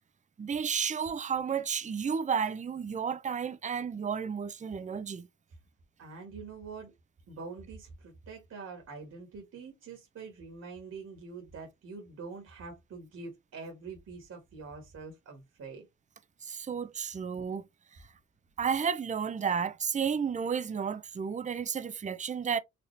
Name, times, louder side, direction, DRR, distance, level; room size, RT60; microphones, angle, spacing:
voice 1, 0.4-5.3 16.4-17.6 18.6-22.6, right 6 dB, 25° right, 0.6 m, -32 dB
voice 2, 6.0-6.9 7.3-15.8, right 4 dB, 55° right, 1.9 m, -45 dB
5.0 x 2.8 x 3.3 m
cardioid pair, 90°, 30 cm